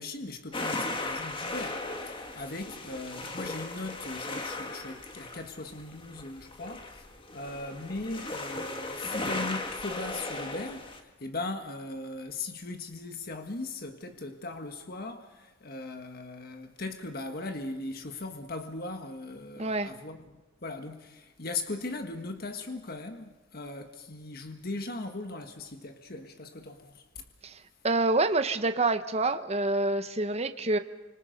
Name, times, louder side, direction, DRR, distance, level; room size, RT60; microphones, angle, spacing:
voice 1, 0.0-27.2, left 2 dB, 50° left, 1.6 m, -39 dB
sound 1, 0.5-11.0, left 2 dB, 25° left, 1.9 m, -37 dB
voice 2, 19.6-19.9 27.4-30.8, right 2 dB, 35° right, 1.0 m, -27 dB
29.0 x 26.0 x 5.3 m
head